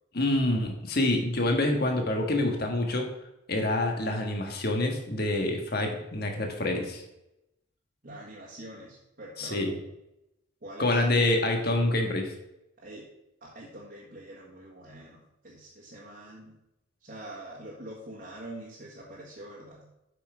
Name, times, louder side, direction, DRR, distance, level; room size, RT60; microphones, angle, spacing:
voice 1, 0.1-3.1 3.5-7.0 9.4-9.7 10.8-12.3, left 1 dB, 45° left, 3 dB, 1.5 m, -26 dB
voice 2, 8.0-9.8 10.6-11.0 12.8-13.1 13.4-16.6 17.0-19.9, right 1 dB, 45° right, -5 dB, 1.7 m, -45 dB
8.3 x 5.9 x 4.9 m, 0.87 s
head